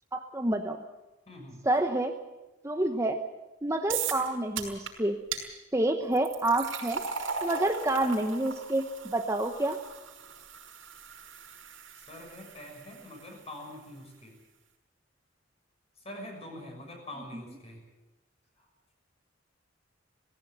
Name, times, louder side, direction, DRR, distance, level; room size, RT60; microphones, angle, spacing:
voice 1, 0.1-0.8 1.6-2.1 2.6-3.2 3.6-5.2 5.7-7.0 7.4-9.8, right 1 dB, 15° right, 5 dB, 1.0 m, -28 dB
voice 2, 1.3-1.6 12.0-14.4 16.0-17.8, left 1 dB, 30° left, 2 dB, 6.5 m, -44 dB
sound 1, 3.9-4.3 4.6-4.9 5.3-5.4 6.1-13.2, right 6 dB, 85° right, 5.7 m, -38 dB
19.0 x 16.5 x 9.2 m, 1.1 s
head